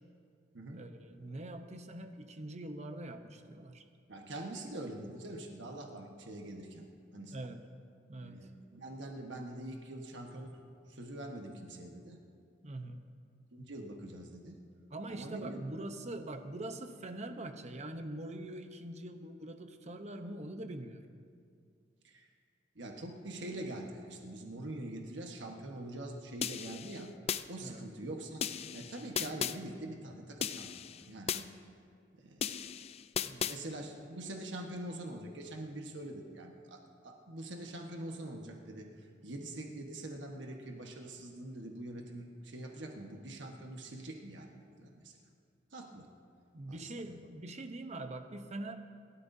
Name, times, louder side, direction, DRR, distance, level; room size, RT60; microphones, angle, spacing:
voice 1, 0.7-3.8 7.3-7.6 8.1-8.4 12.6-13.0 14.9-21.0 27.6-27.8 33.2-33.8 45.9-46.0 46.5-48.8, right 1 dB, 40° right, 7 dB, 0.9 m, -43 dB
voice 2, 4.1-6.9 7.1-7.3 8.2-10.6 10.9-12.2 13.5-14.6 15.1-15.6 22.0-22.3 22.7-27.1 27.5-28.4 28.7-30.7 31.0-31.5 32.2-32.5 33.4-38.9 39.2-45.1 45.7-46.1 46.7-47.0, right 1 dB, 75° right, 2 dB, 1.3 m, -44 dB
sound 1, 26.4-27.4 28.4-29.6 30.4-31.4 32.4-33.6, left 8 dB, 35° left, 0.3 m, -36 dB
28.5 x 13.0 x 2.7 m, 2.3 s
head